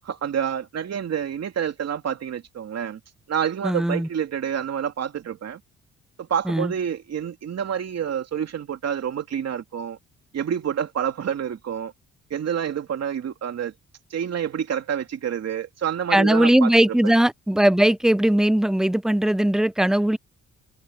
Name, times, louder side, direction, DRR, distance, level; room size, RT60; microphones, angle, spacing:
voice 1, 0.0-3.0 3.3-5.6 6.2-10.0 10.3-11.9 12.3-13.7 14.1-17.1, right 8 dB, 55° right, 2.9 m, -28 dB
voice 2, 3.6-4.1 6.5-6.7 16.1-20.2, right 1 dB, ahead, 0.4 m, -19 dB
cardioid pair, 90°, 30 cm